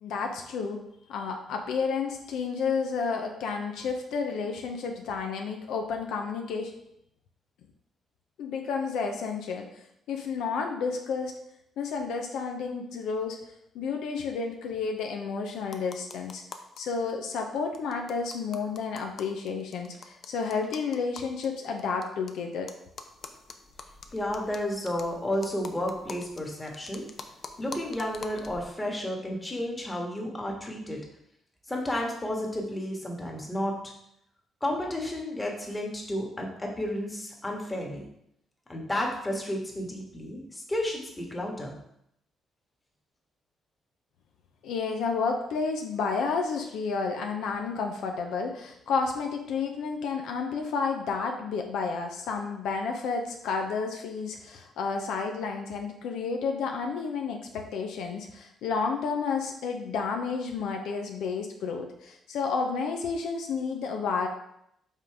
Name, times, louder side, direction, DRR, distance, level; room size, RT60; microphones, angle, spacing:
voice 1, 0.0-0.8 1.1-6.7 8.4-11.4 11.8-13.4 13.7-16.4 16.8-22.7 44.6-64.3, left 5 dB, 85° left, 3 dB, 0.7 m, -31 dB
sound 1, 15.6-16.8 17.1-17.2 17.4-17.5 17.7-22.3 22.7-28.7, left 4 dB, 50° left, 0.6 m, -45 dB
voice 2, 24.1-27.0 27.6-31.0 31.7-33.8 34.6-38.0 38.7-41.8, left 1 dB, 15° left, 0 dB, 1.5 m, -32 dB
5.5 x 3.8 x 4.8 m, 0.77 s
cardioid pair, 90°, 0 cm